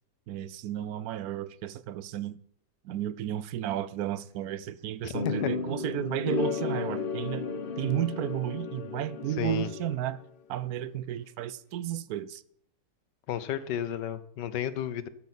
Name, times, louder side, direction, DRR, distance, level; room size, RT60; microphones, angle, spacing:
voice 1, 0.3-2.4 2.8-7.4 7.8-10.2 10.5-12.4, right 12 dB, 70° right, 1.0 m, -33 dB
voice 2, 5.0-5.5 9.4-9.7 13.3-15.1, left 10 dB, 90° left, 1.4 m, -32 dB
sound 1, 5.1-10.3, left 4 dB, 45° left, 0.8 m, -33 dB
12.5 x 8.4 x 4.1 m
omnidirectional pair, 1.8 m